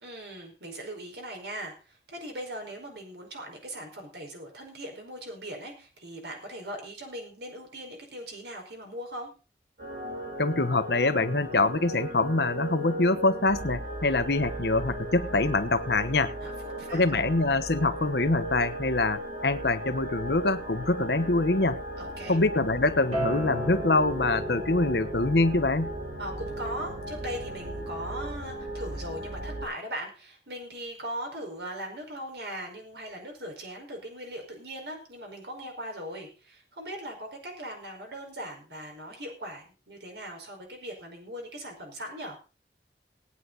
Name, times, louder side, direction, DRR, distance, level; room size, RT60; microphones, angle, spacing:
voice 1, 0.0-9.3 16.4-17.2 22.0-22.4 26.2-42.4, right 1 dB, 80° right, 2 dB, 4.9 m, -39 dB
sound 1, 9.8-29.7, right 1 dB, 60° right, 7.6 m, -37 dB
voice 2, 10.4-16.3 16.9-21.8 22.3-25.9, left 2 dB, 70° left, 10 dB, 1.1 m, -25 dB
Acoustic guitar, 23.1-28.3, right 1 dB, 40° right, 3.8 m, -37 dB
19.0 x 9.7 x 4.0 m, 0.34 s
head